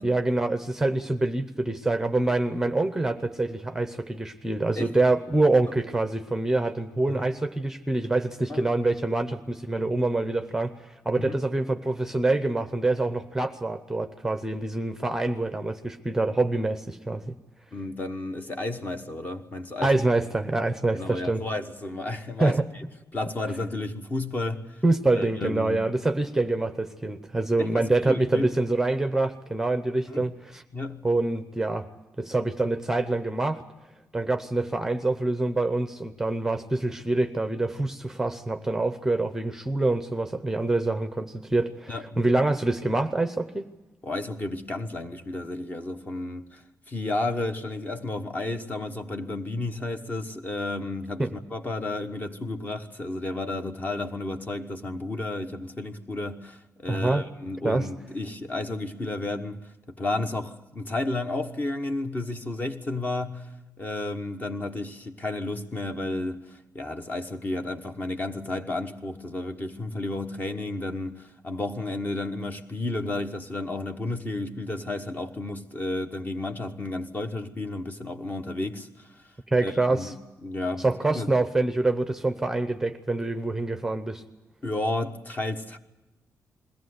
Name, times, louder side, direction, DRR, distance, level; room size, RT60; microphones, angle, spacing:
voice 1, 0.0-17.3 19.8-21.4 22.4-22.7 24.8-30.6 31.0-31.9 32.2-33.6 34.1-43.7 51.2-51.3 56.9-57.2 57.6-57.9 79.5-80.1 80.8-84.2, right 2 dB, 5° right, 0.7 m, -26 dB
voice 2, 17.7-20.0 20.9-22.8 23.1-24.8 25.1-25.8 27.6-28.5 30.1-30.3 30.7-31.0 41.9-42.0 44.0-79.3 79.6-81.3 84.6-85.8, left 2 dB, 30° left, 1.2 m, -32 dB
21.5 x 17.0 x 9.6 m
wide cardioid pair, 145°, 6 cm